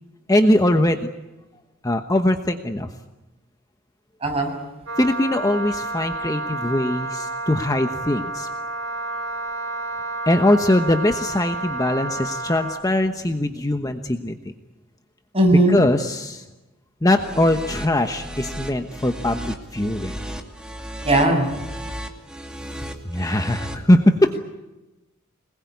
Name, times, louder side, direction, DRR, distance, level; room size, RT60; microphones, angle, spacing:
voice 1, 0.3-1.1 1.8-2.9 5.0-8.5 10.3-14.4 15.7-16.4 17.0-20.1 22.8-24.4, left 1 dB, 15° left, 6 dB, 1.1 m, -21 dB
voice 2, 4.2-4.5 15.3-15.8 21.0-21.5, right 1 dB, 30° right, 2 dB, 7.0 m, -18 dB
Wind instrument woodwind instrument, 4.9-12.9, right 2 dB, 70° right, 5.8 m, -30 dB
sound 1, 17.1-23.7, equal, 5° right, 2.5 m, -35 dB
26.5 x 20.5 x 9.6 m, 1.1 s
head